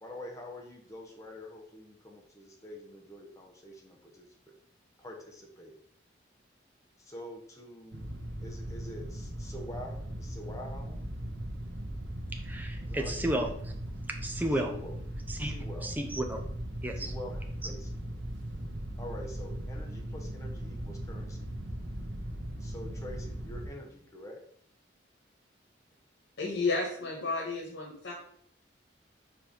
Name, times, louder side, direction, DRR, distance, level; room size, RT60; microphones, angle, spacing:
voice 1, 0.0-4.3 5.0-5.7 7.0-8.1 8.4-11.0 12.8-13.2 14.7-14.9 15.4-15.9 17.0-18.0 19.0-21.5 22.6-24.4, left 1 dB, 15° left, 0 dB, 1.1 m, -46 dB
sound 1, 7.9-23.7, right 1 dB, 90° right, 1.0 m, -39 dB
voice 2, 12.3-13.7 14.1-14.7 15.3-15.5 15.8-16.4 16.8-17.1 17.6-17.7, right 1 dB, 10° right, 3 dB, 0.7 m, -33 dB
voice 3, 26.4-28.1, left 3 dB, 90° left, -4 dB, 1.7 m, -32 dB
4.8 x 4.5 x 5.1 m, 0.65 s
head